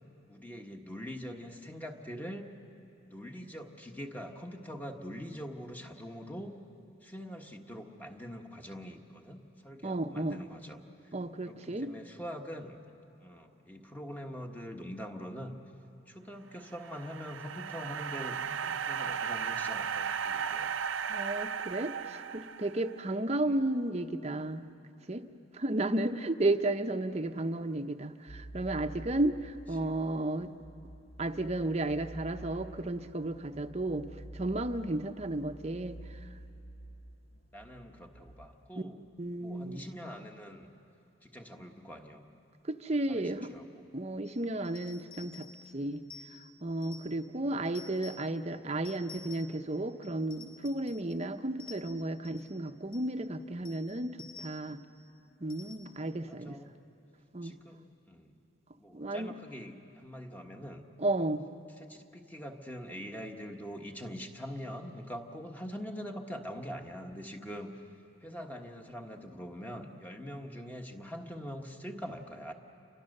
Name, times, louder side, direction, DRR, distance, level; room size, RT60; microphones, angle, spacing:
voice 1, 0.3-2.5 3.0-6.5 7.0-10.8 11.4-12.8 13.2-15.5 16.1-20.8 23.3-23.5 29.7-29.9 37.5-39.0 39.4-40.7 41.2-42.2 43.1-43.7 47.3-47.6 56.3-56.7 57.4-58.4 58.8-60.8 61.8-67.7 68.2-72.5, equal, 10° left, 3 dB, 1.4 m, -43 dB
voice 2, 9.8-10.4 11.1-11.9 21.1-24.7 25.1-25.3 25.5-30.5 31.2-36.2 39.2-39.8 42.6-43.5 43.9-45.5 45.7-46.0 46.6-54.8 55.4-56.6 57.3-57.6 58.9-59.3 61.0-61.5, right 2 dB, 35° right, 8 dB, 0.8 m, -33 dB
sound 1, 16.6-23.0, right 7 dB, 85° right, 0.7 m, -35 dB
sound 2, 28.3-38.5, right 1 dB, 50° left, 1.1 m, -49 dB
sound 3, 44.2-47.3 47.6-48.3 48.8-49.7 50.0-51.3 51.6-52.6 52.9-53.2 53.6-54.8 55.5-56.1, left 4 dB, 30° left, 3.9 m, -52 dB
30.0 x 25.0 x 6.6 m, 2.8 s
head